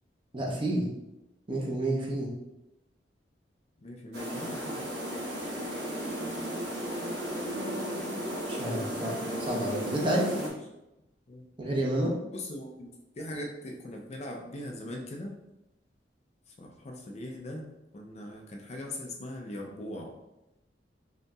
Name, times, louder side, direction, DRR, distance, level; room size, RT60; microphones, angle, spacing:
voice 1, 0.3-0.9 1.5-2.3 8.5-9.1 9.4-10.3 11.6-12.1, right 1 dB, 30° right, -3 dB, 0.9 m, -29 dB
voice 2, 3.8-4.9 10.4-10.5 11.3-11.5 12.3-15.4 16.5-20.1, left 1 dB, 40° left, 1 dB, 0.5 m, -40 dB
sound 1, 4.1-10.5, equal, 75° right, 1.0 m, -34 dB
5.3 x 2.8 x 2.3 m, 0.94 s
head